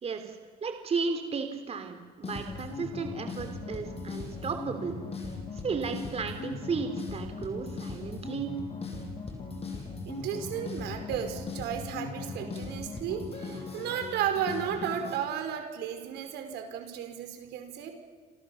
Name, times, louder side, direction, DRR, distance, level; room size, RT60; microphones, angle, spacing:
voice 1, 0.0-5.0 5.5-8.6, right 5 dB, 35° right, 7 dB, 3.3 m, -34 dB
sound 1, 2.2-15.2, left 3 dB, 35° left, 7.1 m, -39 dB
voice 2, 10.0-17.9, right 9 dB, 85° right, 6 dB, 5.1 m, -34 dB
28.5 x 27.0 x 7.2 m, 1.5 s
cardioid pair, 110°, 17 cm